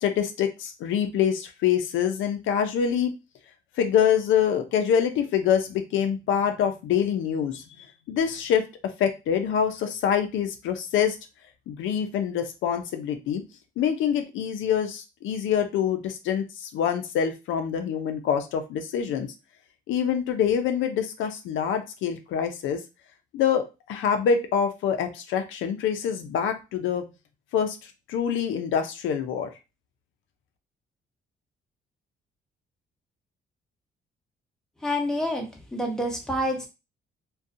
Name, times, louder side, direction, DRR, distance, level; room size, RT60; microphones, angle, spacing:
voice 1, 0.0-3.1 3.8-8.7 9.0-11.2 11.7-13.4 13.8-19.3 19.9-22.8 23.3-23.6 23.9-27.0 27.5-29.5, left 8 dB, 80° left, 6 dB, 0.5 m, -25 dB
voice 2, 34.8-35.5 35.7-36.7, equal, 5° left, 0 dB, 0.8 m, -27 dB
2.4 x 2.2 x 2.6 m, 0.27 s
cardioid pair, 90°, 20 cm